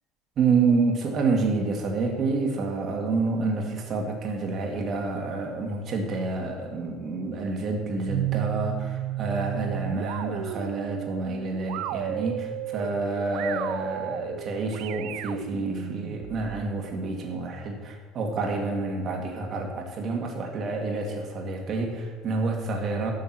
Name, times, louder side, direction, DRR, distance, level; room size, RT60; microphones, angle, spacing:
voice 1, 0.4-23.1, right 3 dB, 35° right, 2 dB, 2.1 m, -28 dB
sound 1, 8.1-16.7, right 14 dB, 70° right, 0.6 m, -33 dB
12.5 x 6.4 x 7.5 m, 1.4 s
cardioid pair, 155°, 0 cm